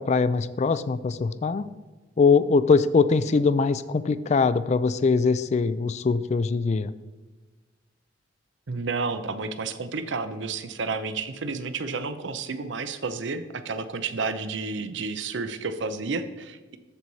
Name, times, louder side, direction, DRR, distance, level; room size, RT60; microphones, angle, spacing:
voice 1, 0.0-1.7 2.2-6.9, left 4 dB, 35° left, 15 dB, 0.3 m, -22 dB
voice 2, 8.7-16.8, right 4 dB, 70° right, 11 dB, 0.6 m, -31 dB
14.0 x 4.7 x 4.1 m, 1.3 s
head